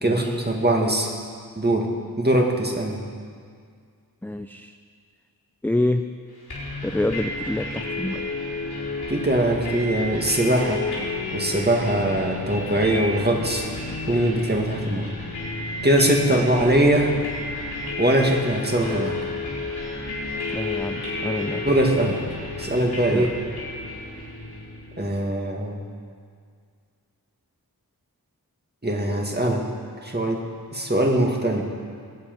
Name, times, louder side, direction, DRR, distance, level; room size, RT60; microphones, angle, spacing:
voice 1, 0.0-1.1 1.6-1.9 2.2-3.0 9.1-10.8 11.3-13.7 14.1-15.1 15.8-17.1 18.0-19.2 21.7-22.2 22.6-23.3 25.0-25.8 28.8-29.6 30.0-30.4 30.7-31.6, right 1 dB, 25° right, 0 dB, 2.0 m, -21 dB
voice 2, 4.2-4.8 5.6-6.0 6.8-8.2 20.5-21.6 23.1-23.3, left 1 dB, 5° left, 7 dB, 0.4 m, -27 dB
sound 1, 6.5-25.2, left 2 dB, 90° left, 4.7 m, -31 dB
21.5 x 8.7 x 5.4 m, 2.1 s
wide cardioid pair, 60°, 37 cm